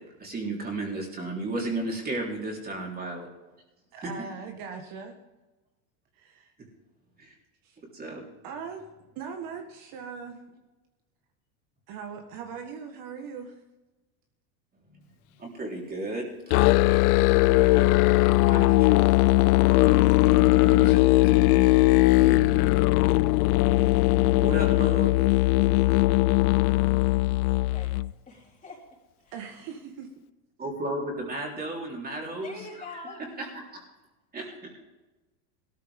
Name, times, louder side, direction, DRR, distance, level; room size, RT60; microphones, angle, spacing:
voice 1, 0.2-3.3 4.0-4.1 7.2-7.3 7.9-8.2 15.4-16.3 17.4-17.9 18.2-19.1 19.7-21.3 22.1-22.6 24.4-25.3 30.6-33.0 33.4-33.8 34.3-34.8, right 2 dB, 20° right, -1 dB, 3.8 m, -34 dB
voice 2, 3.9-5.2 6.1-6.5 7.6-7.8 8.4-8.9 9.1-10.4 11.9-13.5 20.2-21.1 23.9-24.0 29.3-30.1, right 6 dB, 50° right, 4 dB, 1.7 m, -40 dB
Musical instrument, 16.5-28.1, left 18 dB, 80° left, 0.5 m, -20 dB
voice 3, 28.3-28.8 29.2-29.4 32.4-33.2, left 3 dB, 20° left, -2 dB, 3.7 m, -43 dB
17.5 x 13.5 x 3.7 m, 1.1 s
supercardioid pair, 130°, 44 cm